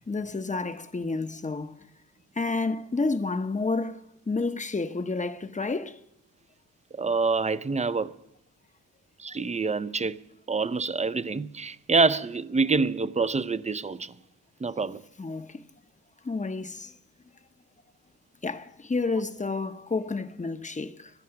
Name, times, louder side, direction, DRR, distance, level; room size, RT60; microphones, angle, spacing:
voice 1, 0.1-1.7 2.4-6.0 15.2-15.6 16.2-16.9 18.4-21.1, left 3 dB, 20° left, 0.9 m, -30 dB
voice 2, 6.9-8.1 9.2-10.2 10.5-14.1 14.6-15.0, right 4 dB, 20° right, 0.6 m, -26 dB
17.5 x 12.5 x 5.9 m
cardioid pair, 75°, 35 cm